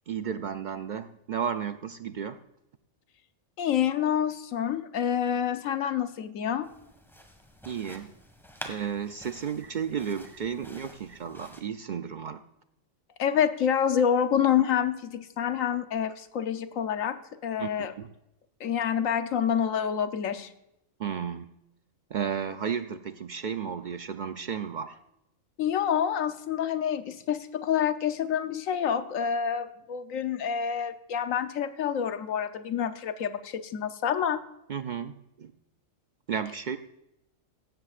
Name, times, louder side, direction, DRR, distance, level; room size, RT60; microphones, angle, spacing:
voice 1, 0.1-2.4 7.7-8.1 8.6-12.4 17.6-18.1 21.0-21.5 22.1-25.0 34.7-35.5 36.3-36.8, right 7 dB, 70° right, 9 dB, 0.4 m, -33 dB
voice 2, 3.6-6.7 13.2-17.9 18.6-20.5 25.6-34.4, left 8 dB, 75° left, 9 dB, 1.2 m, -27 dB
sound 1, 6.6-11.6, equal, ahead, 1.6 m, -48 dB
17.0 x 14.5 x 2.5 m, 0.85 s
omnidirectional pair, 1.4 m